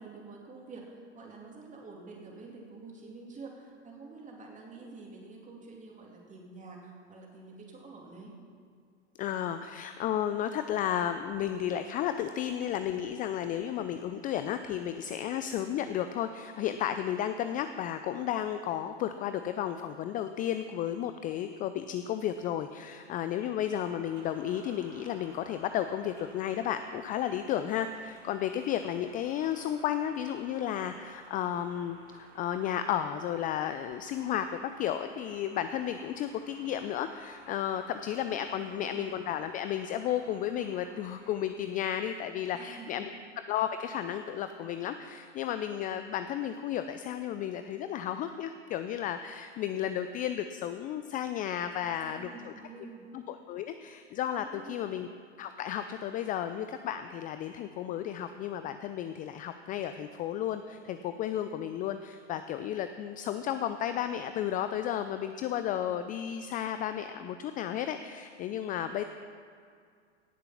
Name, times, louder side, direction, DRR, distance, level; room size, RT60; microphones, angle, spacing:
voice 1, 0.0-8.4 38.3-39.1 42.5-43.0 51.8-53.2 54.4-55.0, right 3 dB, 20° right, -1 dB, 3.0 m, -48 dB
voice 2, 9.2-34.5 34.8-43.1 43.5-52.5 53.1-55.1 55.4-69.0, left 10 dB, 25° left, 10 dB, 0.4 m, -33 dB
sound 1, 23.7-41.4, right 2 dB, 45° right, 3.6 m, -56 dB
17.5 x 6.8 x 5.9 m, 2.2 s
hypercardioid pair, 100°, 36 cm